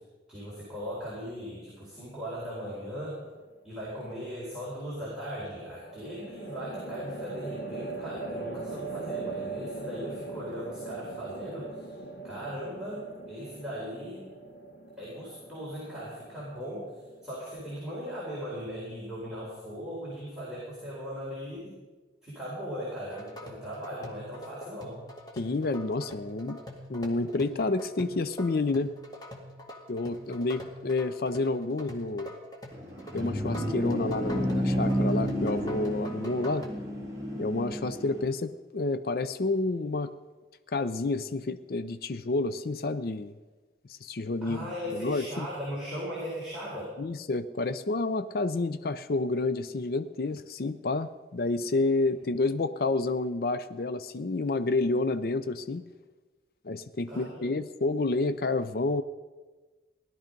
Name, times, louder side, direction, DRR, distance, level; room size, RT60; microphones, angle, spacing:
voice 1, 0.3-3.2 3.6-11.9 12.2-14.2 15.0-16.9 17.2-21.8 22.2-25.0 44.4-46.9 57.1-57.5, equal, 5° right, -9 dB, 4.2 m, -38 dB
sound 1, 2.8-3.3 5.9-17.2, right 3 dB, 80° left, 1.2 m, -40 dB
sound 2, 23.1-36.8, equal, 20° left, 1.9 m, -45 dB
voice 2, 25.4-26.6 26.9-28.9 29.9-32.3 33.1-36.7 37.4-40.1 40.7-43.3 43.9-45.5 47.0-55.8 56.6-59.0, left 3 dB, 55° left, 12 dB, 0.5 m, -29 dB
sound 3, 32.7-38.3, equal, 20° right, 2.7 m, -31 dB
17.5 x 12.0 x 5.2 m, 1.3 s
head